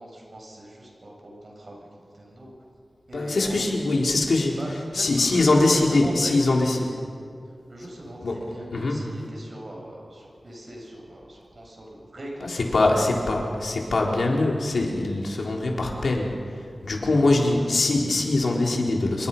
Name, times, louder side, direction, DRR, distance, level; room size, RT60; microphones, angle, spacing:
voice 1, 0.0-2.5 3.1-3.7 4.6-6.4 7.7-12.6 17.1-17.3, right 1 dB, 50° right, -1 dB, 7.1 m, -40 dB
voice 2, 3.1-4.6 4.9-7.0 8.2-8.5 8.7-9.1 12.4-19.3, left 2 dB, 80° left, -1 dB, 3.9 m, -23 dB
27.0 x 23.0 x 5.6 m, 2.5 s
wide cardioid pair, 90°, 0 cm